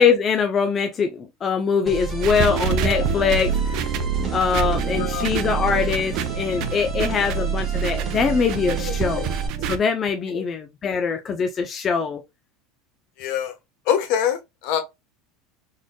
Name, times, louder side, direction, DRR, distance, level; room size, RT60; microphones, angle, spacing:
voice 1, 0.0-3.9 4.3-9.3 9.7-12.2, left 6 dB, 30° left, 0.6 m, -23 dB
sound 1, 1.9-9.5, right 5 dB, 25° right, 1.3 m, -30 dB
sound 2, 2.2-9.8, right 8 dB, 55° right, 0.5 m, -27 dB
voice 2, 4.9-5.3 6.5-6.6 7.2-7.3 8.8-8.9 10.3-10.4 13.2-13.5 13.9-14.8, left 9 dB, 65° left, 1.1 m, -25 dB
4.0 x 3.2 x 2.2 m
supercardioid pair, 115°, 0 cm